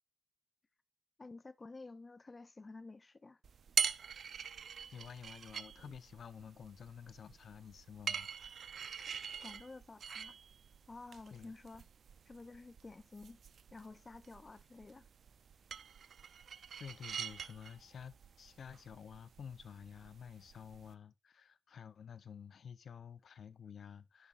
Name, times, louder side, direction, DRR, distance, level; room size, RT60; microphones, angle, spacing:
voice 1, 1.2-3.4 9.4-10.4 10.9-11.9 12.3-13.4 13.7-15.1, left 3 dB, 30° left, 0.4 m, -51 dB
sound 1, 3.4-20.9, right 7 dB, 75° right, 0.4 m, -44 dB
voice 2, 4.9-8.3 11.3-11.5 16.8-24.3, left 7 dB, 80° left, 0.5 m, -51 dB
10.5 x 6.9 x 2.4 m
wide cardioid pair, 175°, 0 cm